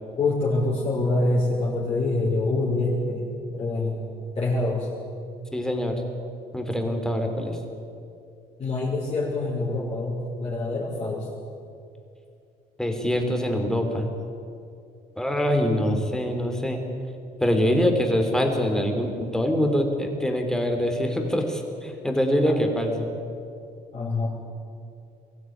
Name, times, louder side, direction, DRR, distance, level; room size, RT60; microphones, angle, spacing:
voice 1, 0.2-4.0 4.4-4.9 8.6-11.3 22.4-22.5 23.9-24.3, left 2 dB, 35° left, -6 dB, 5.3 m, -25 dB
voice 2, 5.5-6.0 6.5-7.6 12.8-14.1 15.2-16.8 17.4-23.1, equal, 5° left, 3 dB, 3.5 m, -24 dB
22.5 x 15.5 x 9.5 m, 2.5 s
cardioid pair, 110°, 17 cm